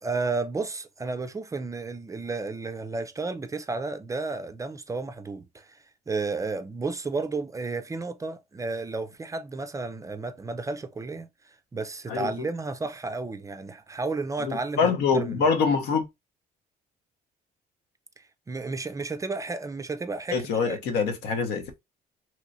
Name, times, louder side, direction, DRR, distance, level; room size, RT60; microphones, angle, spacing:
voice 1, 0.0-5.8 6.1-15.5 18.2-20.8, right 3 dB, 20° right, 0.4 m, -32 dB
voice 2, 12.1-12.5 14.4-16.0 20.3-21.6, left 5 dB, 75° left, 0.9 m, -25 dB
3.0 x 3.0 x 2.6 m
cardioid pair, 110°, 17 cm